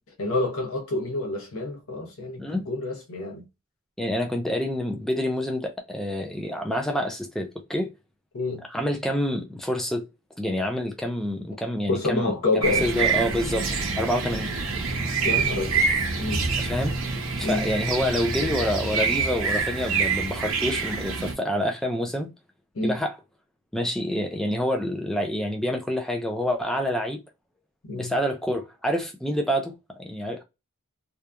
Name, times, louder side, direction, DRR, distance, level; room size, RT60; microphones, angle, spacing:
voice 1, 0.2-3.5 8.3-8.6 11.9-12.9 15.2-15.8 16.2-16.7 17.4-17.7 22.7-23.0 27.8-28.1, left 2 dB, 75° left, 0.9 m, -28 dB
voice 2, 4.0-7.9 8.7-10.1 10.4-12.3 12.8-14.5 16.6-17.0 17.4-22.3 22.8-23.1 23.7-27.2 28.0-30.4, equal, ahead, 0.3 m, -27 dB
sound 1, 12.6-21.3, right 5 dB, 65° right, 0.8 m, -26 dB
2.7 x 2.3 x 2.3 m
head